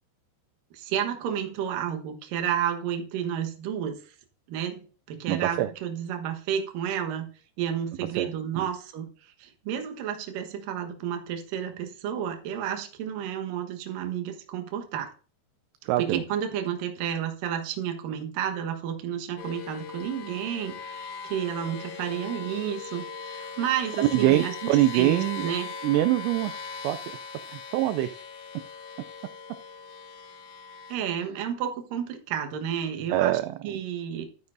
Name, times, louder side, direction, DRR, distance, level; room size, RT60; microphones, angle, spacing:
voice 1, 0.7-4.1 4.5-7.3 7.6-9.1 9.4-15.1 16.0-24.5 24.9-25.7 30.9-34.3, right 9 dB, 65° right, 4 dB, 2.5 m, -31 dB
voice 2, 5.3-5.7 8.2-8.3 8.5-8.7 15.8-16.2 24.0-25.5 25.8-26.6 26.8-27.0 27.5-28.2 33.1-33.8, right 14 dB, 85° right, 11 dB, 2.6 m, -24 dB
sound 1, 19.4-31.0, left 5 dB, 80° left, 4.0 m, -40 dB
13.5 x 9.3 x 2.6 m, 0.38 s
omnidirectional pair, 5.4 m